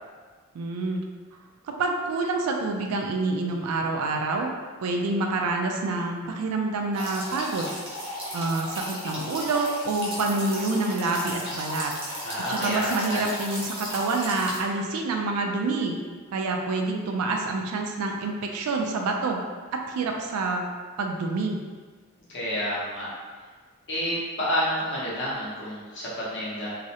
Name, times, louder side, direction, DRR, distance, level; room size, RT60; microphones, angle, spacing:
voice 1, 0.5-1.0 1.8-4.5 4.8-7.7 8.3-11.9 12.5-16.0 16.3-19.4 19.9-20.6 21.0-21.6, right 3 dB, 85° right, 2 dB, 0.3 m, -27 dB
sound 1, 6.9-14.6, equal, 25° right, 0.6 m, -35 dB
voice 2, 12.2-13.2 22.3-23.1 23.9-26.7, equal, 55° left, -7 dB, 0.8 m, -29 dB
2.4 x 2.0 x 2.7 m, 1.5 s
head